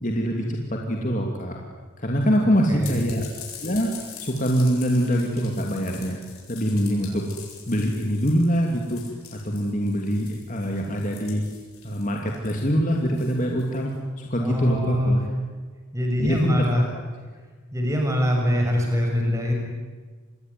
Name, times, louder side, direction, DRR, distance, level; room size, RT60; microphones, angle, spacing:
voice 1, 0.0-1.6 2.0-3.2 3.6-3.9 4.2-6.2 6.5-7.3 7.7-9.1 9.3-11.4 11.8-15.2 16.2-16.8, equal, 35° left, 1 dB, 2.8 m, -24 dB
voice 2, 2.4-3.0 7.1-7.2 14.4-15.2 15.9-16.8 17.7-19.5, equal, 15° right, 1 dB, 6.2 m, -23 dB
sound 1, 2.8-13.9, left 7 dB, 85° left, 7.9 m, -44 dB
28.0 x 21.5 x 9.6 m, 1.4 s
head